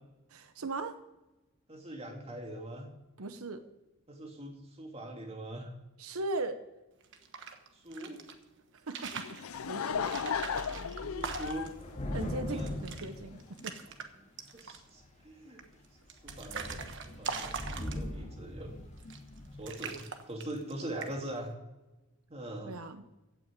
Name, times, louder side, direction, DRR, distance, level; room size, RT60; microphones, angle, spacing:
voice 1, 0.3-0.9 3.2-3.6 6.0-6.6 8.9-9.3 9.7-10.1 12.1-13.8 22.7-23.0, right 2 dB, 90° right, 9 dB, 0.9 m, -38 dB
voice 2, 1.7-2.9 4.1-5.7 7.7-8.2 10.7-11.7 12.5-12.7 14.5-15.6 16.2-18.7 19.6-21.5 22.3-22.7, right 1 dB, 30° right, 2 dB, 2.4 m, -42 dB
sound 1, 7.0-8.3 8.8-9.4 10.0-11.8 12.2-12.3 12.6-13.1 13.4-14.1 14.4-14.9 15.6-18.3 19.0-19.4 19.7-20.7 21.0-21.4, right 5 dB, 60° right, 1.3 m, -41 dB
Laughter / Crowd, 9.1-12.9, left 7 dB, 85° left, 0.6 m, -36 dB
Thunder / Rain, 9.5-9.6 9.9-14.0 14.7-15.2 15.6-15.8 16.0-19.8, left 1 dB, 35° left, 2.0 m, -41 dB
16.0 x 6.1 x 8.9 m, 1.0 s
head